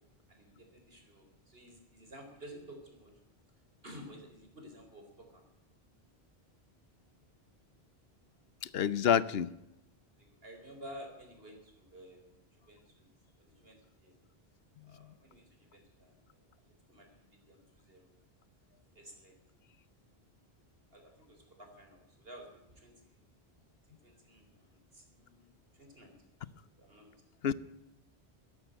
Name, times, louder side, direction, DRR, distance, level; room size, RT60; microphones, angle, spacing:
voice 1, 0.3-3.1 3.8-5.5 10.1-12.2 12.5-13.1 13.4-14.1 14.8-18.1 18.9-19.4 20.9-23.2 23.8-26.2 26.8-27.2, equal, 65° right, 4 dB, 4.3 m, -53 dB
voice 2, 8.6-9.5 27.4-27.5, left 8 dB, 70° left, 18 dB, 0.9 m, -28 dB
14.0 x 11.0 x 9.0 m, 0.91 s
omnidirectional pair, 1.1 m